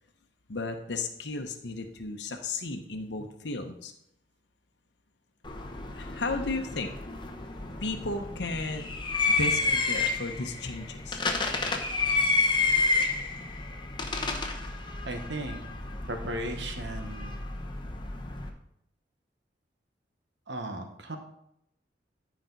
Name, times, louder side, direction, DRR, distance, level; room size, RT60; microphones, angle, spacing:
voice 1, 0.5-3.9 5.9-6.9 7.8-8.9 9.3-11.2, left 3 dB, 70° left, 4 dB, 0.9 m, -34 dB
sound 1, 5.4-18.5, left 3 dB, 25° left, 0.9 m, -30 dB
voice 2, 15.0-15.6 16.1-17.5 20.5-21.2, right 1 dB, 75° right, 5 dB, 1.2 m, -36 dB
13.5 x 5.1 x 4.0 m, 0.75 s
head